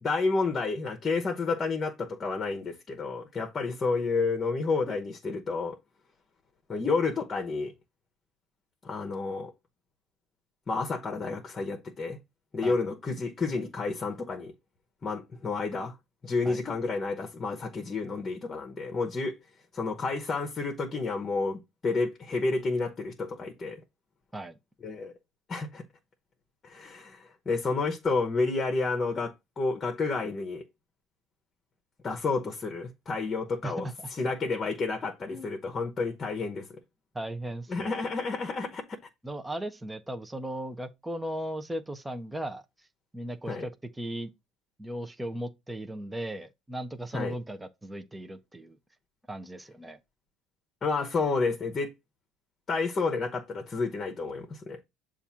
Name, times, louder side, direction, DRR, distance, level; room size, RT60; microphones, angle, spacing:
voice 1, 0.0-5.8 6.7-7.7 8.8-9.5 10.7-12.2 12.5-14.5 15.0-16.0 16.2-19.4 19.7-23.8 24.8-25.1 25.5-25.8 26.6-30.6 32.0-33.9 34.2-36.8 37.7-38.8 43.5-43.7 47.1-47.3 50.8-51.9 52.7-54.8, left 4 dB, 30° left, 1.0 m, -30 dB
voice 2, 33.6-34.1 35.3-35.5 37.1-38.0 39.2-42.9 43.1-44.3 44.8-48.8 49.3-50.0, right 1 dB, 10° right, 0.7 m, -37 dB
6.9 x 2.5 x 5.6 m
supercardioid pair, 90°, 0 cm